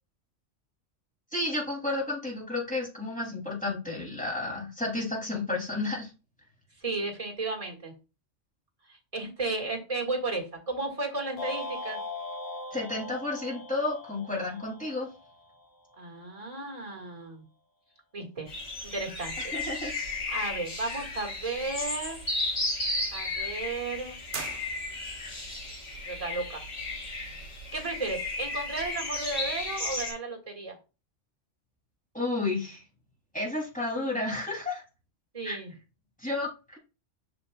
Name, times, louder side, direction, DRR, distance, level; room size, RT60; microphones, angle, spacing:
voice 1, 1.3-6.1 12.7-15.1 19.4-19.9 32.1-32.8 33.3-34.8 35.4-35.6 36.2-36.8, left 2 dB, 5° left, -3 dB, 2.7 m, -31 dB
voice 2, 6.8-7.9 8.9-12.0 16.0-17.5 18.1-18.5 18.8-19.5 20.3-22.2 23.1-24.2 26.1-26.6 27.7-30.8 35.3-35.7, right 3 dB, 30° right, 1 dB, 1.9 m, -34 dB
sound 1, 11.4-15.7, left 2 dB, 85° left, 1.7 m, -39 dB
sound 2, 18.5-30.1, left 2 dB, 70° left, 4.5 m, -34 dB
sound 3, 24.3-25.3, right 6 dB, 50° right, 0.9 m, -40 dB
7.4 x 6.3 x 2.3 m, 0.30 s
omnidirectional pair, 1.3 m